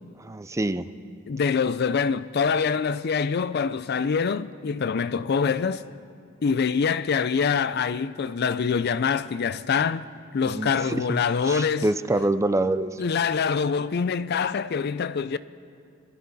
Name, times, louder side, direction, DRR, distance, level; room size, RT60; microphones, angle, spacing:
voice 1, 0.2-0.9 10.5-11.2 11.5-13.0, right 2 dB, 15° right, 0.4 m, -26 dB
voice 2, 1.3-5.9 6.4-10.1 10.3-11.9 13.0-15.4, left 6 dB, 55° left, 0.4 m, -25 dB
25.5 x 12.5 x 4.1 m
head